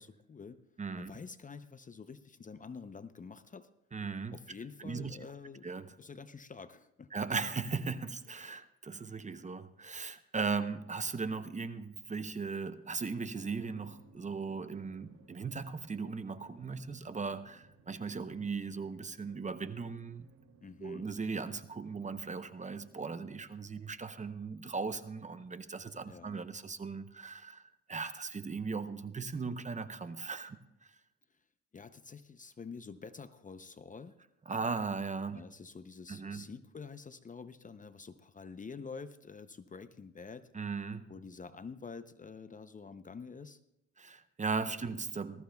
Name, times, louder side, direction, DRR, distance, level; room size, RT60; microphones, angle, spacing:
voice 1, 0.0-0.6 1.0-3.7 4.3-5.7 6.0-7.1 20.6-21.1 26.1-26.4 31.7-34.2 35.3-40.5 41.1-43.6, left 5 dB, 25° left, 12 dB, 0.6 m, -48 dB
voice 2, 0.8-1.1 3.9-4.4 4.8-5.2 5.6-5.9 7.1-20.3 20.8-30.6 30.8-31.0 34.5-35.4 36.1-36.4 40.5-41.1 44.0-45.4, right 4 dB, 25° right, 11 dB, 0.7 m, -38 dB
Drum, 13.5-24.5, right 4 dB, 80° right, 2.5 m, -62 dB
19.5 x 14.0 x 2.3 m, 0.85 s
cardioid pair, 90°, 30 cm